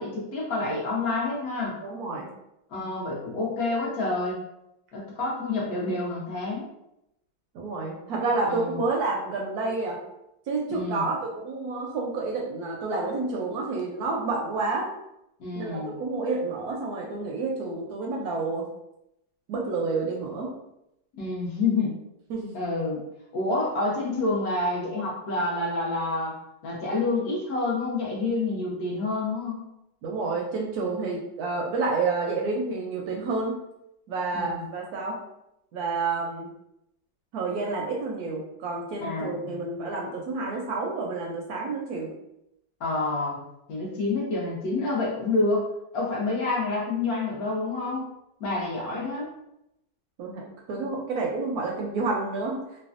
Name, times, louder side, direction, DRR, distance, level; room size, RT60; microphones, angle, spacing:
voice 1, 0.0-1.7 2.7-4.4 4.9-6.7 8.5-8.8 10.7-11.0 15.4-15.9 21.2-21.9 22.5-23.0 23.3-26.3 26.6-29.7 34.3-34.7 39.0-39.6 42.8-43.4 43.7-45.7 45.9-48.1 48.4-49.3, left 3 dB, 65° left, -4 dB, 1.2 m, -28 dB
voice 2, 1.8-2.3 7.5-10.0 10.5-14.9 15.6-18.7 19.5-20.5 22.3-22.5 30.0-33.5 34.1-35.2 35.7-36.5 37.3-42.1 50.2-52.6, right 3 dB, 70° right, -1 dB, 0.9 m, -29 dB
3.3 x 2.2 x 2.4 m, 0.83 s
omnidirectional pair, 1.8 m